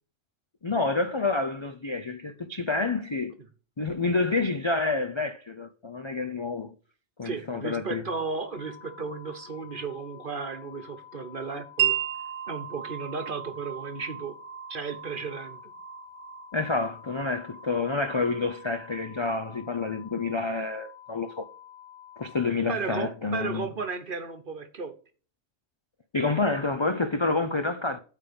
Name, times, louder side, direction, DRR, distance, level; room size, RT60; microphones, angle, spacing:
voice 1, 0.6-3.3 3.8-6.7 7.2-8.0 16.5-21.5 22.2-23.7 26.1-28.0, left 3 dB, 45° left, 0.3 m, -28 dB
voice 2, 7.2-12.0 12.5-14.4 14.7-15.7 22.7-24.9, right 4 dB, 40° right, 1.2 m, -34 dB
sound 1, 8.5-22.5, left 11 dB, 65° left, 2.5 m, -49 dB
Wind chime, 11.8-19.4, right 12 dB, 65° right, 0.9 m, -35 dB
9.0 x 3.6 x 6.8 m
omnidirectional pair, 1.4 m